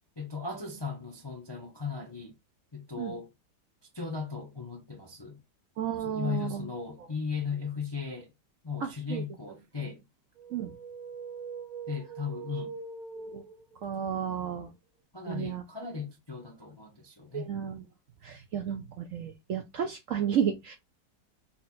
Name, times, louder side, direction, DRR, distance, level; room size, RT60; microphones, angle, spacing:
voice 1, 0.2-2.3 2.7-3.3 3.9-5.4 6.0-8.3 8.6-10.0 11.9-12.7 15.1-17.5, left 5 dB, 25° left, 0.5 m, -37 dB
voice 2, 5.8-6.7 8.8-9.2 10.5-10.7 13.2-13.4 13.8-14.7 15.3-15.6 17.3-17.8 18.2-20.8, right 8 dB, 65° right, 0.8 m, -32 dB
sound 1, 10.4-14.0, right 5 dB, 30° right, 1.1 m, -42 dB
4.2 x 2.5 x 4.2 m
omnidirectional pair, 1.9 m